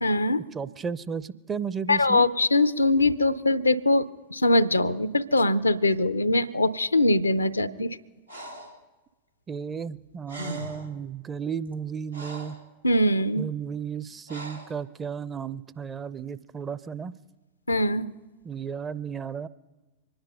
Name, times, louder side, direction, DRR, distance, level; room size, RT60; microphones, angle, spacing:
voice 1, 0.0-0.4 1.9-4.1 4.3-8.0 12.8-13.5 17.7-18.1, left 2 dB, 80° left, 16 dB, 0.5 m, -22 dB
voice 2, 0.5-2.2 9.5-12.6 13.4-17.2 18.4-19.5, right 7 dB, 20° right, 15 dB, 0.5 m, -34 dB
Breathing, 8.3-8.8 10.0-10.1 10.3-11.0 11.6-12.7 14.3-14.8, right 1 dB, 85° right, 1.5 m, -39 dB
24.5 x 10.5 x 5.5 m, 1.2 s
figure-of-eight pair, 90°, 0 cm